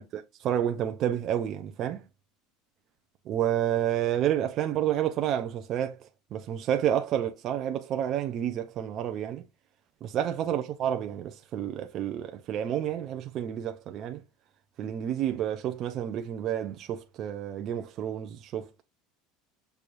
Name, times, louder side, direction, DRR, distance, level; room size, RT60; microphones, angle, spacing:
voice 1, 0.0-2.0 3.3-6.0 6.3-9.4 10.0-14.2 14.8-18.8, right 10 dB, 35° right, 0.6 m, -30 dB
6.0 x 3.4 x 2.6 m
cardioid pair, 165°, 0 cm